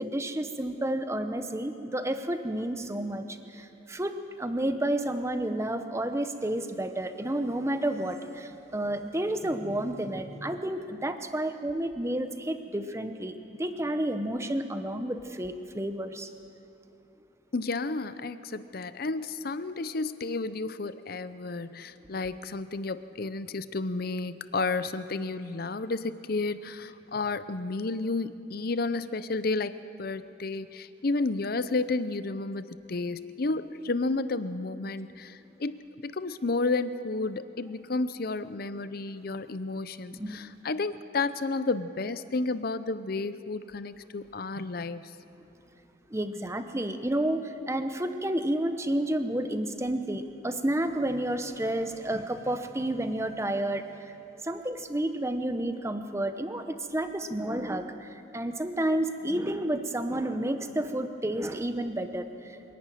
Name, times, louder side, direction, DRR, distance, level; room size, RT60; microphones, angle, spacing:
voice 1, 0.0-16.3 40.1-40.5 46.1-54.1 54.4-62.6, right 1 dB, 15° right, 8 dB, 0.9 m, -31 dB
voice 2, 17.5-45.1, left 3 dB, 50° left, 13 dB, 0.7 m, -32 dB
25.0 x 11.5 x 9.2 m, 2.9 s
head